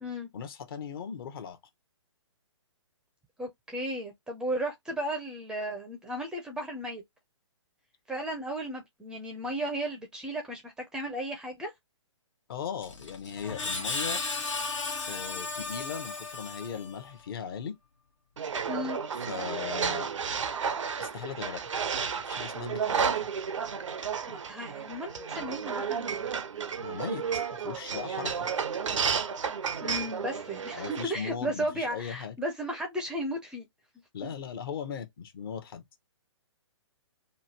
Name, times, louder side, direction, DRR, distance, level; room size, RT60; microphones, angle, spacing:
voice 1, 0.3-1.6 12.5-14.2 15.1-17.8 19.3-20.1 21.0-21.7 22.2-23.2 26.8-28.3 30.7-32.4 34.1-35.8, left 7 dB, 50° left, 0.7 m, -38 dB
voice 2, 3.4-7.0 8.1-11.7 18.7-19.0 24.3-26.2 29.8-33.7, right 1 dB, 5° right, 0.4 m, -35 dB
Screech, 12.8-17.1, left 3 dB, 80° left, 1.0 m, -35 dB
sound 1, 18.4-31.0, right 6 dB, 80° right, 0.5 m, -32 dB
3.0 x 2.2 x 2.7 m
hypercardioid pair, 135°, 16 cm